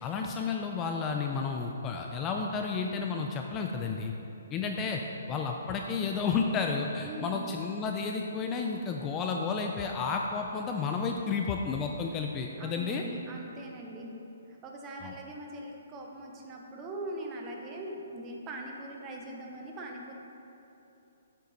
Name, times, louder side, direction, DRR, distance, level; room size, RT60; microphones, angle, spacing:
voice 1, 0.0-4.1 4.5-5.0 5.3-13.0 15.0-15.1, left 5 dB, 20° left, 2 dB, 0.4 m, -31 dB
voice 2, 7.0-7.5 12.6-14.2 14.5-20.1, right 1 dB, 20° right, 0 dB, 0.8 m, -41 dB
8.1 x 5.5 x 4.0 m, 2.9 s
hypercardioid pair, 150°, 0 cm